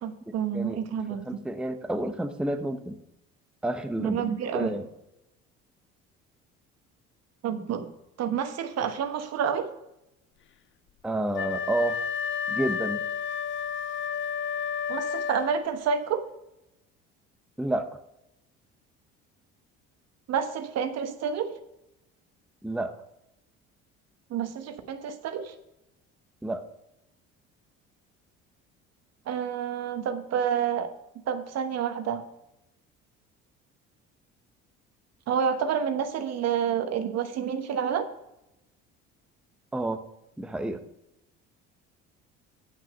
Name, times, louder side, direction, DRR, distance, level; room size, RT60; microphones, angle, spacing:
voice 1, 0.0-1.3 4.0-4.7 7.4-7.9 8.2-9.7 14.9-16.2 20.3-21.5 24.3-25.5 29.3-30.9 31.3-32.2 35.3-38.1, right 7 dB, 60° right, 8 dB, 1.2 m, -29 dB
voice 2, 1.1-3.0 3.6-4.3 4.5-4.9 11.0-12.0 12.5-13.0 17.6-17.8 22.6-22.9 26.4-26.6 39.7-40.0 40.4-40.8, right 1 dB, 5° right, 7 dB, 0.7 m, -29 dB
Wind instrument woodwind instrument, 11.3-15.8, left 7 dB, 40° left, 0.5 m, -31 dB
9.0 x 6.1 x 5.4 m, 0.87 s
supercardioid pair, 80°, 30 cm